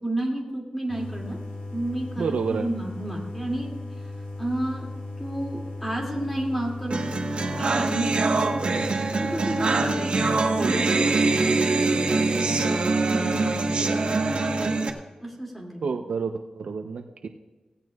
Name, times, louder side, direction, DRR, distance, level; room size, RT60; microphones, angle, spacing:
voice 1, 0.0-1.4 1.7-3.7 4.4-4.9 5.2-8.6 9.1-10.2 10.6-12.8 13.1-14.8 15.2-15.8, right 1 dB, 5° left, -2 dB, 2.5 m, -31 dB
sound 1, 0.9-14.8, left 2 dB, 80° left, 4.4 m, -37 dB
voice 2, 2.2-2.7 15.8-17.3, right 5 dB, 75° right, 5 dB, 0.7 m, -29 dB
sound 2, 6.9-14.9, right 3 dB, 60° right, 1.2 m, -24 dB
17.0 x 15.5 x 2.4 m, 1.3 s
wide cardioid pair, 175°, 2 cm